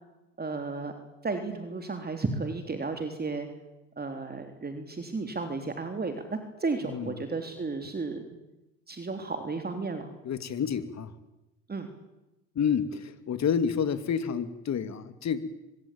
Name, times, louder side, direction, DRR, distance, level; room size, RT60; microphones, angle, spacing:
voice 1, 0.4-0.9 1.2-3.5 4.0-8.2 8.9-10.1 11.7-11.9, right 3 dB, 25° right, 6 dB, 3.6 m, -33 dB
voice 2, 6.8-7.2 10.2-11.1 12.5-15.4, left 7 dB, 45° left, 11 dB, 2.7 m, -29 dB
24.5 x 22.5 x 8.8 m, 0.96 s
hypercardioid pair, 60°, 37 cm